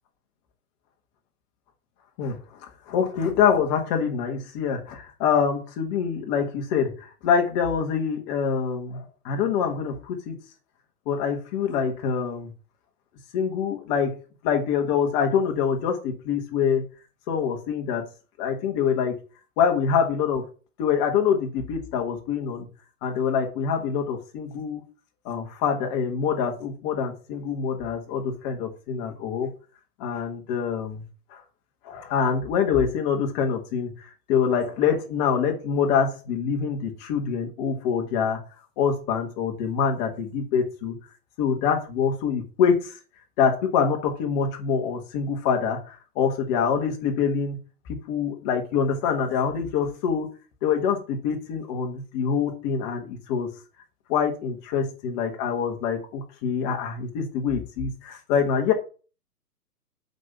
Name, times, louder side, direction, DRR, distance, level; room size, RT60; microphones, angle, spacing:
voice 1, 2.9-10.3 11.1-12.5 13.3-14.2 14.4-16.8 17.3-18.1 18.4-19.1 19.6-20.5 20.8-22.7 23.0-24.8 25.2-29.5 30.0-31.0 31.3-31.4 31.8-33.9 34.3-38.4 38.8-41.0 41.4-43.0 43.4-47.6 47.9-50.3 50.6-53.5 54.1-58.7, left 7 dB, 25° left, 3 dB, 1.5 m, -25 dB
5.8 x 5.4 x 5.8 m, 0.36 s
hypercardioid pair, 145°, 47 cm